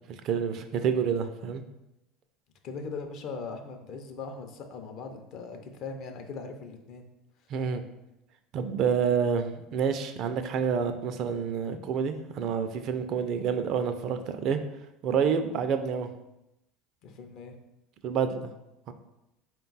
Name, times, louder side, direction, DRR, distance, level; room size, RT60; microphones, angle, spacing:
voice 1, 0.1-1.6 7.5-7.8 8.5-14.6 15.0-16.1 18.0-18.5 18.9-19.0, right 6 dB, 55° right, 8 dB, 0.4 m, -28 dB
voice 2, 2.6-7.1 17.0-17.5, left 4 dB, 55° left, 5 dB, 0.5 m, -40 dB
3.9 x 2.3 x 3.9 m, 0.89 s
hypercardioid pair, 85°, 0 cm